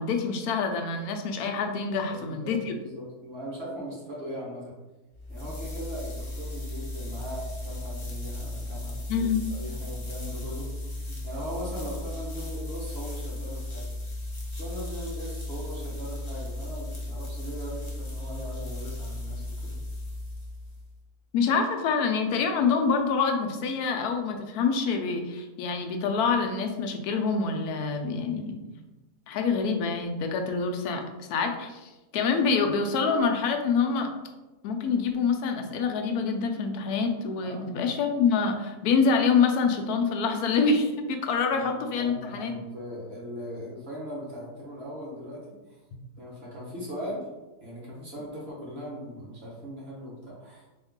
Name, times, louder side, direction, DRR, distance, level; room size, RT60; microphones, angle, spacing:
voice 1, 0.0-2.7 9.1-9.5 21.3-28.5 29.3-31.0 31.3-34.1 34.6-42.5, left 5 dB, 75° left, 4 dB, 1.1 m, -26 dB
voice 2, 2.1-4.7 5.3-10.7 10.9-14.0 14.6-19.8 28.4-28.6 37.4-37.7 41.5-41.6 41.9-45.6 46.2-47.2 47.6-50.6, equal, 40° right, -5 dB, 1.5 m, -39 dB
sound 1, 5.1-20.9, left 1 dB, 40° left, 0.4 m, -36 dB
3.5 x 3.1 x 3.6 m, 1.1 s
omnidirectional pair, 1.7 m